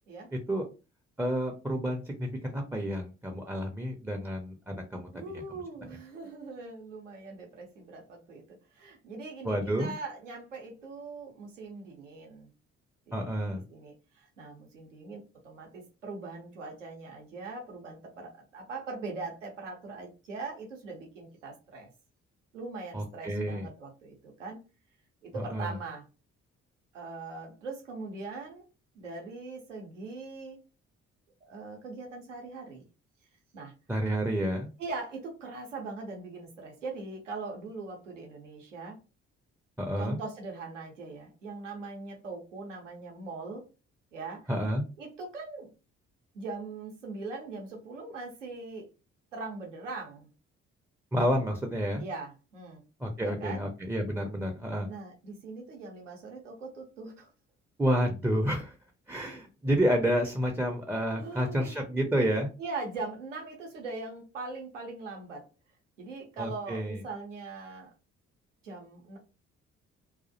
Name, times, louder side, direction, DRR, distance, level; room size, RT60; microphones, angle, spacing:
voice 1, 1.2-5.6 9.4-9.9 13.1-13.6 22.9-23.7 25.3-25.8 33.9-34.7 39.8-40.2 44.5-44.8 51.1-52.0 53.0-54.9 57.8-58.7 59.1-62.5 66.4-67.0, equal, 5° right, 2 dB, 0.4 m, -30 dB
voice 2, 5.1-12.5 13.1-21.9 22.5-24.6 25.2-26.0 26.9-28.7 28.9-30.6 31.4-32.8 33.5-33.7 34.8-39.0 40.0-43.6 44.1-44.5 45.0-45.7 46.3-48.9 49.3-50.3 52.0-52.8 53.2-53.6 54.8-57.3 61.2-61.9 62.6-65.5 66.0-67.9 68.6-69.2, right 3 dB, 85° right, 1 dB, 0.6 m, -41 dB
2.3 x 2.0 x 2.6 m, 0.31 s
figure-of-eight pair, 40°, 36 cm